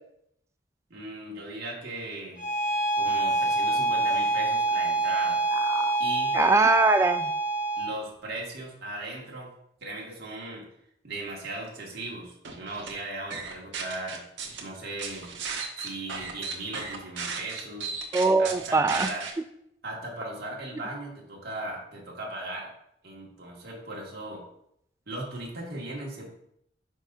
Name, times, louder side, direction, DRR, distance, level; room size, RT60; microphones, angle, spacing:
voice 1, 0.9-2.4 3.0-5.4 6.0-6.4 7.8-9.5 9.8-10.6 11.0-14.2 14.6-15.3 15.8-17.9 18.4-19.3 19.8-22.7 23.0-24.4 25.1-26.2, right 2 dB, 60° right, 2.1 m, -37 dB
Bowed string instrument, 2.4-8.0, right 2 dB, 50° left, 1.9 m, -26 dB
voice 2, 5.7-6.0 6.3-7.3 18.1-19.1, right 3 dB, 15° right, 0.3 m, -22 dB
sound 1, 12.4-12.9 13.3-14.6 15.0-19.3, right 5 dB, 85° right, 1.3 m, -35 dB
9.9 x 5.6 x 2.7 m
head